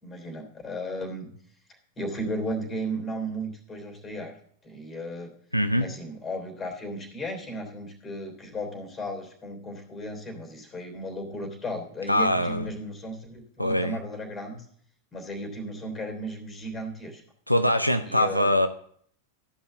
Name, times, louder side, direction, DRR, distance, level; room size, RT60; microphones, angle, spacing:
voice 1, 0.0-1.3 2.0-4.3 4.6-5.3 5.8-14.6 15.1-17.2 18.0-18.5, equal, 15° left, 3 dB, 3.2 m, -35 dB
voice 2, 5.5-5.9 12.1-12.7 13.6-14.0 17.5-18.7, left 1 dB, 90° left, 10 dB, 0.5 m, -23 dB
14.0 x 5.6 x 7.3 m, 0.62 s
figure-of-eight pair, 90°, 0 cm